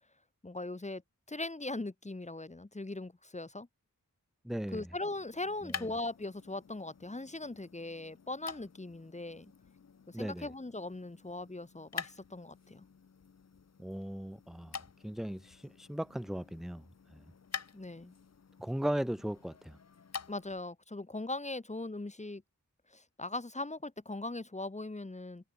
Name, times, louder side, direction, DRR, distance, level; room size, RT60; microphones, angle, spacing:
voice 1, 0.4-1.0 1.3-3.7 4.7-9.5 10.1-12.9 17.7-18.1 20.3-22.4 22.9-25.5, left 2 dB, 20° left, 1.2 m, -40 dB
voice 2, 4.4-4.8 5.6-5.9 10.1-10.5 13.8-14.8 15.0-16.8 17.1-17.2 18.6-19.8, right 1 dB, ahead, 0.4 m, -37 dB
sound 1, 5.0-20.7, left 6 dB, 50° left, 0.8 m, -48 dB
wide cardioid pair, 70°, 33 cm